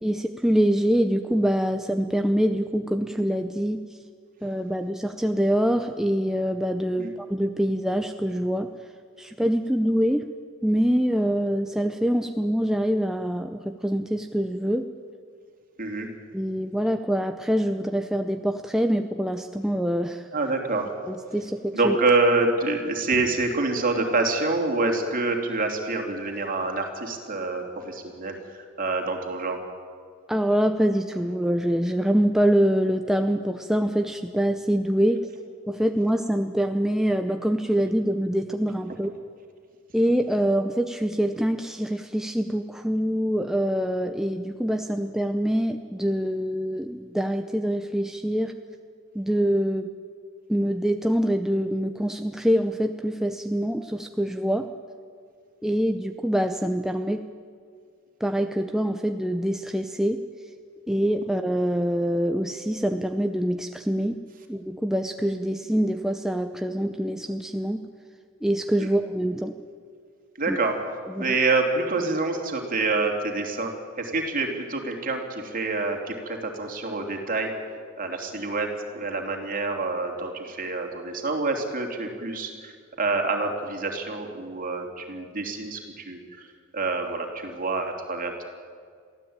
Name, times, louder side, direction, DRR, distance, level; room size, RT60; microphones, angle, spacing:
voice 1, 0.0-3.8 4.4-8.7 9.2-10.3 10.6-14.8 16.3-20.3 21.1-22.0 30.3-35.2 35.7-39.1 39.9-48.5 49.1-49.9 50.5-54.7 55.6-57.2 58.2-60.2 60.9-64.2 64.5-67.8 68.4-69.5 70.5-70.6 71.1-71.4, equal, ahead, 6 dB, 0.6 m, -25 dB
voice 2, 20.3-20.9 21.7-29.6 70.4-70.8 71.2-77.5 78.0-78.7 78.9-86.4 86.7-88.5, right 3 dB, 45° right, 2 dB, 3.2 m, -27 dB
23.0 x 15.5 x 8.9 m, 2.1 s
head